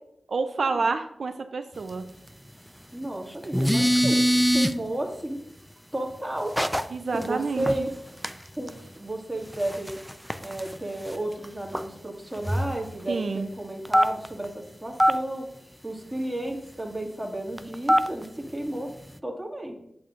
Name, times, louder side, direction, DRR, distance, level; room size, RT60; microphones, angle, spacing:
voice 1, 0.3-2.1 6.9-7.7 13.1-13.5, right 4 dB, 75° right, 7 dB, 0.5 m, -28 dB
voice 2, 2.9-5.4 5.9-6.5 7.1-7.9 8.6-10.0 10.4-15.5 15.8-18.9 19.2-19.7, right 1 dB, 15° right, 1 dB, 2.0 m, -32 dB
sound 1, 3.4-4.7 6.6-6.8 7.2-7.3 7.6-7.8 8.2-8.3 8.7-8.8 9.5-10.8 11.1-11.2 11.4-11.5 11.7-11.8 12.4-12.9 13.8-14.4 15.0-15.1 17.6-18.2, equal, ahead, 0.5 m, -22 dB
8.4 x 8.4 x 2.5 m, 0.78 s
cardioid pair, 40°, 0 cm